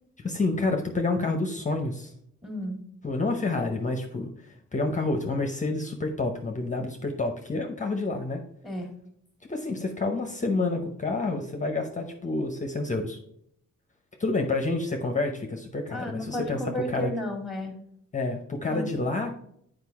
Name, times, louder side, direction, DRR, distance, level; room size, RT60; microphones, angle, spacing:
voice 1, 0.2-2.1 3.0-4.3 4.7-8.4 9.5-13.2 14.2-17.1 18.1-19.3, left 3 dB, 25° left, 4 dB, 0.8 m, -28 dB
voice 2, 2.4-2.8 8.6-8.9 15.9-17.8 18.7-18.9, left 1 dB, ahead, 3 dB, 1.7 m, -32 dB
8.1 x 5.1 x 3.5 m, 0.71 s
wide cardioid pair, 140°, 29 cm